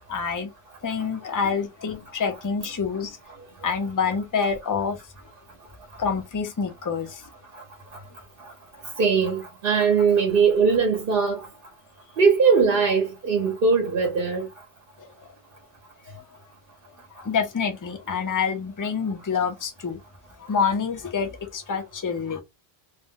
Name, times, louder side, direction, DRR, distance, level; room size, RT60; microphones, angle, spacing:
voice 1, 0.1-0.5 0.8-3.2 3.6-5.0 6.0-7.2 15.0-15.3 16.1-16.2 17.2-20.0 20.4-22.4, left 6 dB, 30° left, 0.3 m, -27 dB
voice 2, 9.0-11.5 12.2-14.5, right 5 dB, 60° right, 0.9 m, -20 dB
2.6 x 2.1 x 3.6 m
omnidirectional pair, 1.1 m